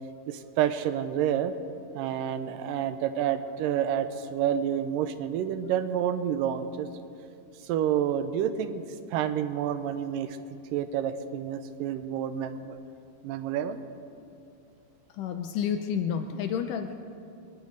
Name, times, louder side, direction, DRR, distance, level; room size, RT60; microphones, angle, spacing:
voice 1, 0.3-1.5 1.9-6.9 7.6-8.8 9.1-10.4 10.7-12.8 13.2-13.8, right 9 dB, 80° right, 11 dB, 2.2 m, -29 dB
voice 2, 15.2-16.9, left 8 dB, 75° left, 6 dB, 2.0 m, -30 dB
23.5 x 11.5 x 5.1 m, 2.5 s
omnidirectional pair, 4.2 m